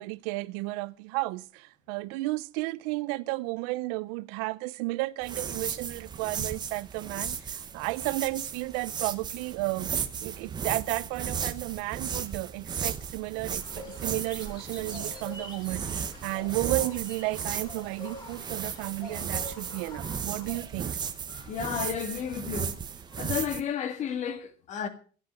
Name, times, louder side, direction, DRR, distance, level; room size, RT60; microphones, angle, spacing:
voice 1, 0.0-21.0, right 21 dB, 85° right, 0.6 m, -33 dB
sound 1, 5.2-23.6, right 7 dB, 25° right, 1.0 m, -35 dB
sound 2, 13.6-20.6, left 2 dB, 25° left, 3.6 m, -46 dB
voice 2, 21.3-22.8 23.1-24.9, left 8 dB, 45° left, 2.0 m, -32 dB
13.5 x 10.5 x 6.3 m
cardioid pair, 150°, 17 cm